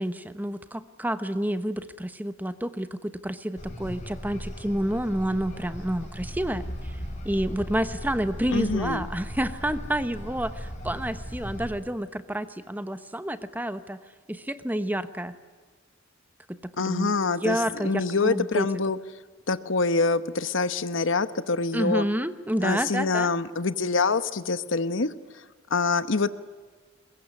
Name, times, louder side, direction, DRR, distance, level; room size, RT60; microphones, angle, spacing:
voice 1, 0.0-7.0 7.2-14.0 14.3-15.3 16.5-17.2 17.4-18.7 21.7-23.3, right 1 dB, 10° right, 11 dB, 1.1 m, -29 dB
sound 1, 3.6-11.7, equal, 40° left, 5.5 m, -37 dB
voice 2, 8.5-9.1 16.8-19.0 19.5-22.1 22.6-25.4 25.7-26.3, left 4 dB, 70° left, 13 dB, 1.0 m, -25 dB
22.5 x 22.0 x 9.7 m, 1.5 s
head